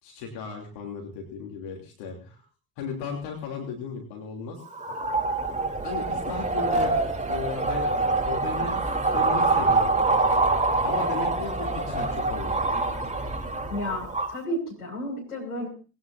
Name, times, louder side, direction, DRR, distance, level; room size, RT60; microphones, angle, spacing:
voice 1, 0.0-2.4 2.8-4.6 5.8-6.9 7.3-7.9 8.3-10.0 10.8-12.7, left 5 dB, 60° left, 1 dB, 3.2 m, -35 dB
sound 1, 4.6-14.4, right 3 dB, 15° right, 3.6 m, -25 dB
voice 2, 13.7-15.7, equal, 85° left, -3 dB, 6.5 m, -32 dB
21.5 x 17.0 x 2.7 m, 0.35 s
figure-of-eight pair, 45°, 45 cm